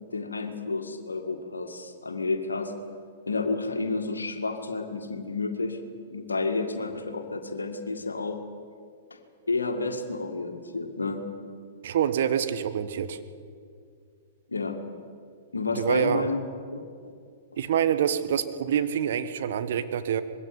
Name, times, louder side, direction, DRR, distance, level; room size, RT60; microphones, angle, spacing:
voice 1, 0.0-2.7 3.3-5.8 6.1-8.4 9.1-9.2 9.5-11.3 14.5-14.8 15.5-16.4 16.7-16.8, left 3 dB, 85° left, 6 dB, 2.0 m, -30 dB
voice 2, 11.8-13.2 15.7-16.2 17.6-20.2, right 9 dB, 60° right, 11 dB, 1.3 m, -26 dB
21.0 x 16.5 x 9.7 m, 2.3 s
figure-of-eight pair, 110°, 0 cm